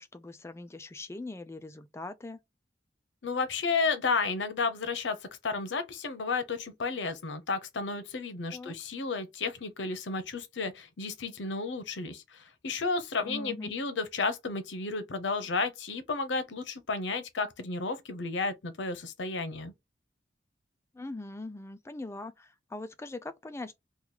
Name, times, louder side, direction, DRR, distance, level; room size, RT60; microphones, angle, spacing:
voice 1, 0.0-2.4 8.5-8.7 13.2-13.7 20.9-23.8, left 2 dB, 15° left, 0.3 m, -41 dB
voice 2, 3.2-5.2 5.4-19.7, left 4 dB, 85° left, 0.7 m, -32 dB
3.0 x 2.3 x 3.8 m
head